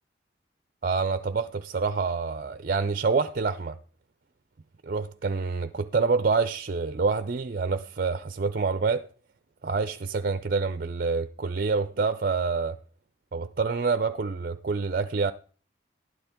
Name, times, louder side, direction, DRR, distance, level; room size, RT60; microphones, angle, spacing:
voice 1, 0.8-3.7 4.8-9.1 9.6-12.8 13.3-15.3, right 4 dB, 50° right, 0.5 m, -27 dB
12.5 x 11.5 x 3.6 m
head